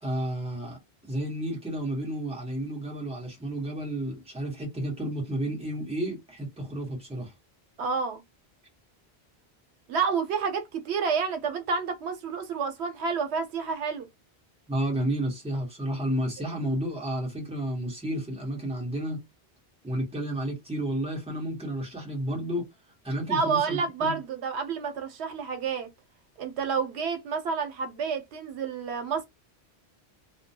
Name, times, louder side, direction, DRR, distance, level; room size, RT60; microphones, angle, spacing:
voice 1, 0.0-7.3 14.7-19.2 19.8-22.7 23.0-24.2, right 1 dB, 5° right, 0.8 m, -31 dB
voice 2, 7.8-8.2 9.9-14.1 23.3-25.9 26.4-29.3, right 5 dB, 85° right, 0.9 m, -29 dB
2.2 x 2.2 x 2.6 m
omnidirectional pair, 1.1 m